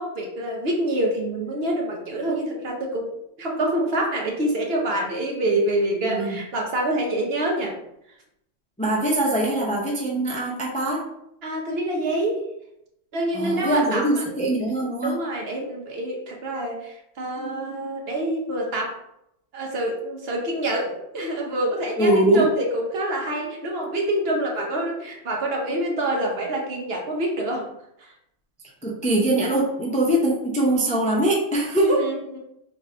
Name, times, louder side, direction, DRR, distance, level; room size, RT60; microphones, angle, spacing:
voice 1, 0.0-3.1 3.4-7.8 11.4-12.4 13.1-14.2 15.0-19.0 19.5-27.7 28.0-28.1 31.8-32.4, right 1 dB, 55° right, 0 dB, 0.9 m, -26 dB
voice 2, 6.0-6.4 8.8-11.0 13.3-15.2 22.0-22.5 28.8-32.1, right 1 dB, 10° left, -3 dB, 0.4 m, -22 dB
3.3 x 2.5 x 4.1 m, 0.80 s
omnidirectional pair, 1.3 m